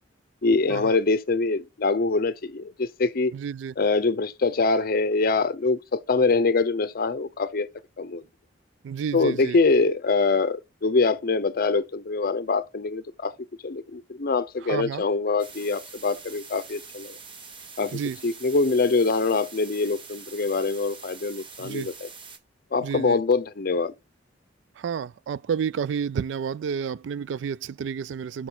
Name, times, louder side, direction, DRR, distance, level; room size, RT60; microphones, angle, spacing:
voice 1, 0.4-3.3 3.8-7.7 8.0-8.2 9.1-13.3 13.6-17.1 17.8-22.1 22.7-23.9, left 3 dB, 55° left, 0.6 m, -24 dB
voice 2, 3.3-3.7 8.8-9.6 14.6-15.0 17.9-18.2 21.6-21.9 22.8-23.2 24.8-28.5, right 7 dB, 70° right, 0.3 m, -30 dB
sound 1, 15.4-22.4, right 5 dB, 30° right, 1.3 m, -44 dB
6.1 x 6.0 x 4.0 m
head